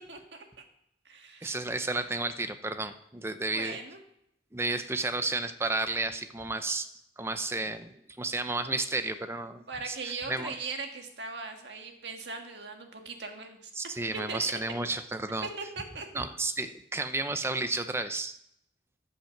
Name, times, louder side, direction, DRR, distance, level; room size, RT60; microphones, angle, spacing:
voice 1, 0.1-0.4 1.0-1.6 3.5-4.0 9.7-13.7 14.3-14.4 15.4-16.1, right 4 dB, 80° right, 4 dB, 1.6 m, -39 dB
voice 2, 1.4-3.8 4.5-6.9 7.2-10.6 13.8-15.5 16.1-18.4, right 2 dB, 15° right, 10 dB, 0.6 m, -32 dB
13.0 x 5.8 x 5.9 m, 0.75 s
head